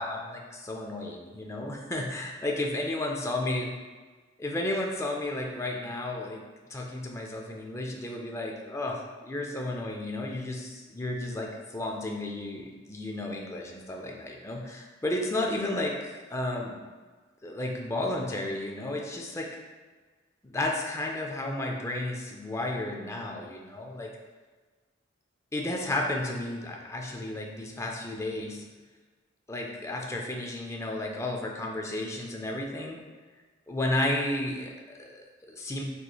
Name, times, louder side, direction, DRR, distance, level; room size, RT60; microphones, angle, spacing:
voice 1, 0.0-3.6 4.4-6.4 6.7-16.8 17.4-19.5 20.4-24.1 25.5-28.6 29.5-33.0 33.7-35.8, left 1 dB, 15° left, 0 dB, 0.5 m, -33 dB
6.7 x 3.1 x 2.3 m, 1.4 s
head